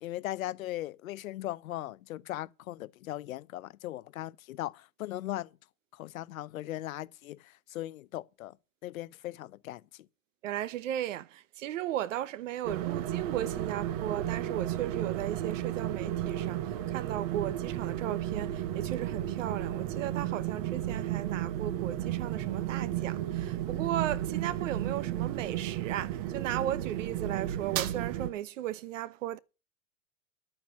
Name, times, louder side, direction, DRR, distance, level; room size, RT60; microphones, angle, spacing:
voice 1, 0.0-5.5 5.9-8.6 8.8-10.1, left 15 dB, 85° left, 0.8 m, -38 dB
voice 2, 10.4-29.4, right 12 dB, 65° right, 1.0 m, -36 dB
sound 1, 12.6-28.3, right 12 dB, 30° right, 0.7 m, -33 dB
11.0 x 9.1 x 5.7 m
supercardioid pair, 165°, 40 cm